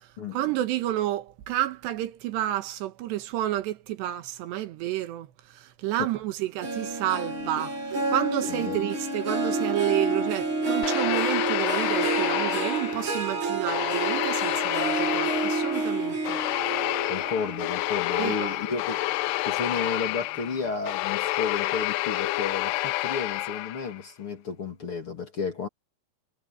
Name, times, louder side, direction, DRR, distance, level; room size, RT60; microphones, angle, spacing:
voice 1, 0.3-7.8 8.1-16.4 18.2-18.6, right 14 dB, 85° right, 3.5 m, -30 dB
Harp, 6.6-19.3 19.8-20.2 20.6-20.7, right 3 dB, 35° right, 2.8 m, -30 dB
voice 2, 8.5-8.8 17.1-19.0 19.4-25.7, left 5 dB, 40° left, 2.6 m, -32 dB
sound 1, 10.8-13.3 13.7-24.0, left 19 dB, 80° left, 2.6 m, -29 dB
omnidirectional pair, 4.9 m